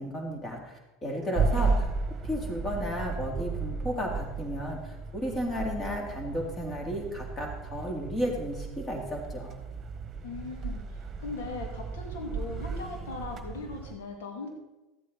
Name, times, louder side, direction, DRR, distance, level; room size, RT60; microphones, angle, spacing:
voice 1, 0.0-1.9 2.2-9.6, equal, 25° left, 1 dB, 3.1 m, -33 dB
voice 2, 1.3-1.8 10.2-14.5, left 3 dB, 85° left, 2 dB, 2.4 m, -39 dB
sound 1, 1.3-14.0, right 4 dB, 30° right, 1.5 m, -34 dB
13.5 x 8.4 x 4.2 m, 1.1 s
supercardioid pair, 105°, 0 cm